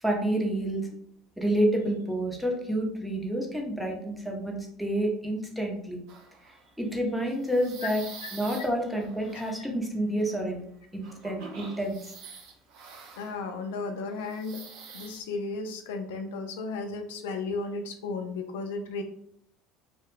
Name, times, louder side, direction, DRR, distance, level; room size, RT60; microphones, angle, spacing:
voice 1, 0.0-0.9 1.4-6.0 6.4-8.0 8.3-10.6 10.9-12.1, right 1 dB, ahead, 0 dB, 0.7 m, -29 dB
sound 1, 6.1-6.7 7.3-9.6 10.2-10.4 11.0-13.7 14.1-15.2, right 5 dB, 70° right, 0.5 m, -46 dB
voice 2, 13.2-14.6 14.9-19.0, left 3 dB, 85° left, 6 dB, 0.3 m, -34 dB
2.3 x 2.1 x 3.1 m, 0.68 s
supercardioid pair, 95°, 0 cm